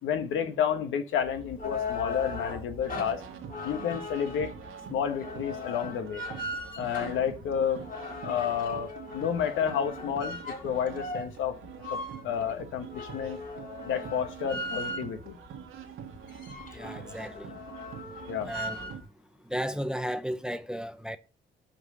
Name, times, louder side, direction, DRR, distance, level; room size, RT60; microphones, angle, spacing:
voice 1, 0.0-3.2 3.6-4.5 4.9-6.2 6.8-7.8 8.2-11.6 11.9-12.0 12.2-13.4 13.8-15.4 18.3-18.5, left 8 dB, 80° left, 1.4 m, -30 dB
sound 1, 1.3-15.3 15.8-15.9 16.1-19.0, left 3 dB, 45° left, 3.2 m, -39 dB
sound 2, 2.8-19.0, right 8 dB, 80° right, 1.7 m, -45 dB
voice 2, 16.7-17.5 18.5-19.0 19.5-21.2, equal, 5° right, 0.7 m, -34 dB
5.8 x 5.7 x 6.7 m
cardioid pair, 90°, 20 cm